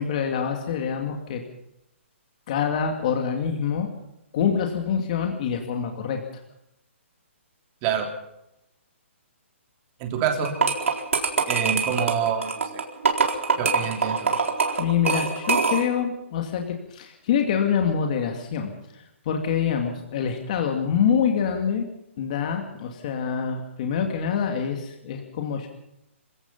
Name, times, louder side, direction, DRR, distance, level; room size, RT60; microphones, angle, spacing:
voice 1, 0.0-1.4 2.5-3.9 4.3-6.2 14.8-21.9 22.2-25.7, left 7 dB, 35° left, 3 dB, 2.5 m, -26 dB
voice 2, 10.0-10.5 11.5-12.8 13.5-14.3, right 7 dB, 20° right, 3 dB, 3.4 m, -26 dB
sound 1, 10.4-16.0, right 5 dB, 75° right, 4.3 m, -24 dB
27.0 x 17.0 x 5.6 m, 0.83 s
hypercardioid pair, 170°, 7 cm